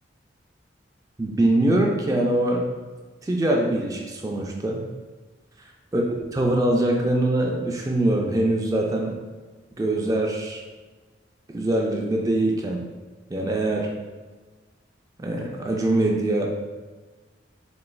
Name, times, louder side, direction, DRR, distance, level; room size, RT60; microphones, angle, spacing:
voice 1, 1.2-2.6 3.2-4.8 5.9-9.2 9.8-10.6 11.5-12.8 13.3-13.9 15.2-16.5, right 1 dB, 20° right, 0 dB, 0.3 m, -23 dB
4.3 x 3.0 x 2.3 m, 1.3 s
head